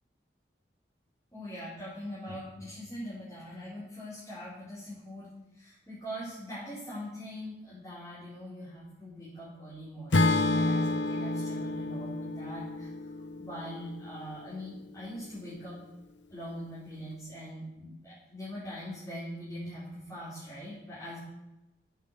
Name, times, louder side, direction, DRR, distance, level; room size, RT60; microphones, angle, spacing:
voice 1, 1.3-12.9 13.4-15.8 16.3-21.2, equal, 15° left, -11 dB, 4.9 m, -42 dB
Acoustic guitar / Strum, 10.1-14.3, left 2 dB, 85° left, 0.8 m, -29 dB
9.3 x 8.3 x 7.8 m, 0.94 s
head